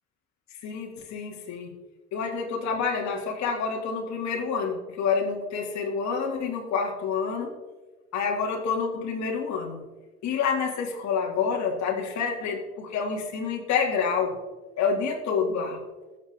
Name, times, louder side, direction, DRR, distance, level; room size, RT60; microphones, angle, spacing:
voice 1, 0.6-1.7 2.1-7.5 8.1-9.8 10.2-14.4 14.8-15.8, left 5 dB, 70° left, 0 dB, 2.1 m, -28 dB
21.0 x 7.3 x 3.4 m, 1.2 s
hypercardioid pair, 55°, 30 cm